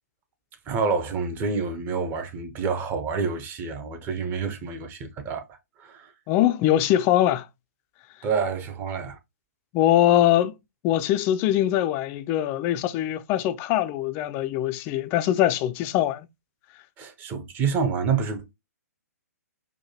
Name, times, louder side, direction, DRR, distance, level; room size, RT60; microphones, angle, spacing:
voice 1, 0.7-6.1 8.2-9.2 17.0-18.5, right 5 dB, 20° right, 0.6 m, -28 dB
voice 2, 6.3-7.5 9.7-10.5 10.8-16.3, left 12 dB, 25° left, 0.3 m, -22 dB
4.6 x 2.2 x 2.8 m
figure-of-eight pair, 125°, 9 cm